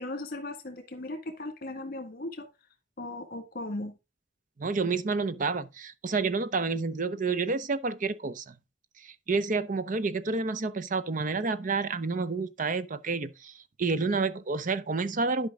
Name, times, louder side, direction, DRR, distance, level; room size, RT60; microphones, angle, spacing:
voice 1, 0.0-2.5 3.0-3.9, left 2 dB, 55° left, 1.8 m, -37 dB
voice 2, 4.6-8.5 9.0-13.5 13.8-15.5, right 4 dB, 45° right, 0.7 m, -29 dB
11.5 x 5.3 x 3.7 m
head